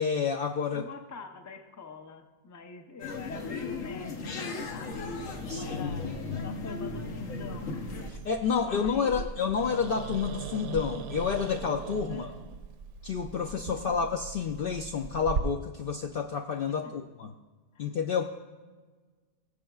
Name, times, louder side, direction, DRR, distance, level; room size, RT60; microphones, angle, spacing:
voice 1, 0.0-0.9 5.5-6.4 8.1-12.3 13.0-17.3 17.8-18.2, left 6 dB, 60° left, 4 dB, 0.6 m, -30 dB
voice 2, 0.7-7.8 8.6-9.3 12.1-12.4 16.7-16.9 17.7-17.9, left 5 dB, 20° left, 5 dB, 0.5 m, -46 dB
sound 1, 3.0-8.1, left 4 dB, 80° left, 1.4 m, -36 dB
Growling, 4.9-15.4, right 5 dB, 70° right, 0.9 m, -40 dB
19.5 x 7.5 x 2.3 m, 1.4 s
omnidirectional pair, 1.3 m